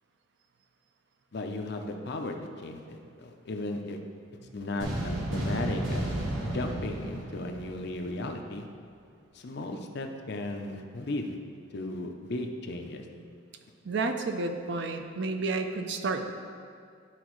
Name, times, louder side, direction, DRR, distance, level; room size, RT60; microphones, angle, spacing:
voice 1, 1.3-4.0 4.5-6.1 6.4-8.7 9.3-11.4 11.7-13.0, left 2 dB, 55° left, 4 dB, 0.6 m, -35 dB
voice 2, 4.4-4.7 13.8-16.3, right 3 dB, 60° right, 6 dB, 0.5 m, -31 dB
sound 1, 4.8-8.2, right 1 dB, 80° right, 1.2 m, -33 dB
11.5 x 4.0 x 3.1 m, 2.4 s
head